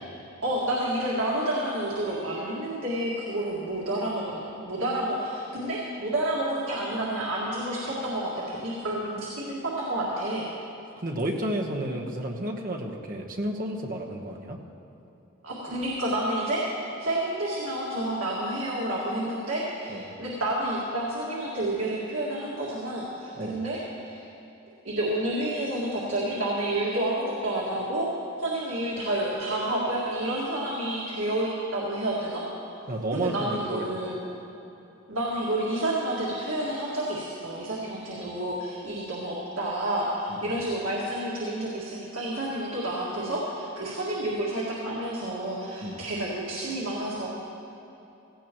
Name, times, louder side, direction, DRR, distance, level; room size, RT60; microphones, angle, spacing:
voice 1, 0.4-10.4 15.4-24.3 24.8-28.1 28.4-32.4 33.1-34.2 35.1-47.3, right 1 dB, 80° right, -6 dB, 2.0 m, -29 dB
voice 2, 11.0-14.6 19.9-20.0 23.4-23.6 32.9-34.1 38.1-38.3 40.3-40.5 45.8-46.0, right 1 dB, 45° right, 1 dB, 1.2 m, -32 dB
17.0 x 15.0 x 3.1 m, 2.9 s
head